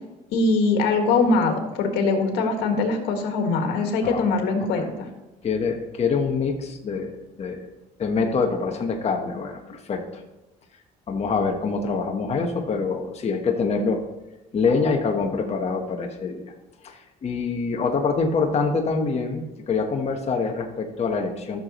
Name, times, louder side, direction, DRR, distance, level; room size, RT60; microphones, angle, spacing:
voice 1, 0.3-5.1, left 3 dB, 85° left, 4 dB, 1.8 m, -22 dB
voice 2, 5.4-7.7 8.0-10.0 11.1-14.0 14.5-16.5 16.8-21.6, left 4 dB, 40° left, 2 dB, 1.2 m, -25 dB
14.0 x 6.9 x 3.1 m, 1.0 s
cardioid pair, 110°, 17 cm